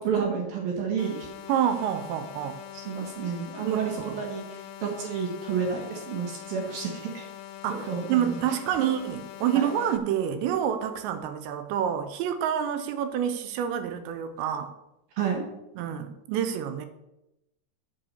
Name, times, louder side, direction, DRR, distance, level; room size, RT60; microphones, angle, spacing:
voice 1, 0.0-1.3 2.9-7.3 7.8-8.4 9.5-9.7 15.2-15.4, right 6 dB, 65° right, 0 dB, 2.8 m, -30 dB
sound 1, 1.0-10.0, left 11 dB, 80° left, 2.8 m, -43 dB
voice 2, 1.5-2.6 3.6-4.1 7.6-14.7 15.8-16.9, right 9 dB, 85° right, 9 dB, 2.9 m, -28 dB
8.2 x 5.9 x 6.7 m, 0.89 s
omnidirectional pair, 5.2 m